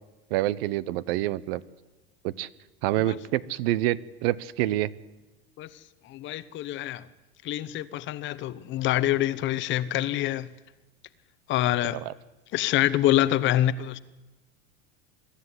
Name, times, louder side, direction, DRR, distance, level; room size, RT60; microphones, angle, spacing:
voice 1, 0.3-1.6 2.2-2.5 2.8-4.9 11.8-12.1, right 15 dB, 70° right, 0.9 m, -27 dB
voice 2, 6.1-7.0 7.4-10.5 11.5-12.0 12.5-14.0, left 13 dB, 40° left, 0.9 m, -26 dB
23.0 x 13.5 x 9.8 m
supercardioid pair, 150°, 31 cm